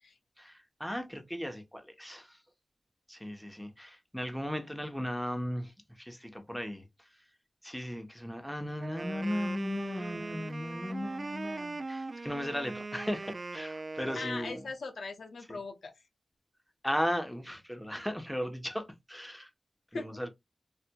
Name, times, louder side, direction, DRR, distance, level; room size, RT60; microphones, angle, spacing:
voice 1, 0.4-2.4 3.1-7.2 7.6-14.6 15.5-15.6 16.8-19.5 19.9-20.3, equal, 5° left, 0.9 m, -36 dB
Wind instrument woodwind instrument, 8.8-14.7, right 3 dB, 50° right, 0.4 m, -40 dB
voice 2, 14.2-15.9 19.9-20.1, left 4 dB, 90° left, 0.6 m, -39 dB
4.4 x 2.4 x 2.2 m
cardioid pair, 50°, 0 cm